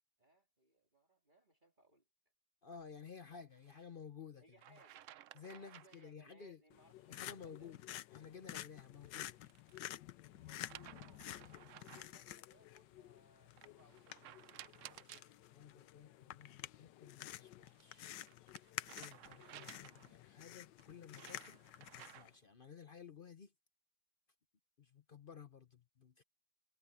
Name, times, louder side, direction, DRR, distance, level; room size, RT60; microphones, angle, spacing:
voice 1, 0.2-2.1 4.4-5.1 5.5-7.9 10.2-11.3 11.8-15.3, right 2 dB, 25° right, 2.8 m, -68 dB
voice 2, 2.6-4.4 4.7-4.8 5.3-6.6 7.1-7.8 8.1-9.4 15.5-18.1 18.9-23.5 24.8-26.2, left 6 dB, 45° left, 0.7 m, -54 dB
sound 1, 3.6-3.8 4.6-6.1 8.9-9.9 10.5-12.2 13.6-15.3 17.4-20.2 20.8-22.4, right 12 dB, 75° right, 0.7 m, -57 dB
sound 2, 6.7-22.3, left 13 dB, 85° left, 1.4 m, -51 dB
omnidirectional pair, 1.9 m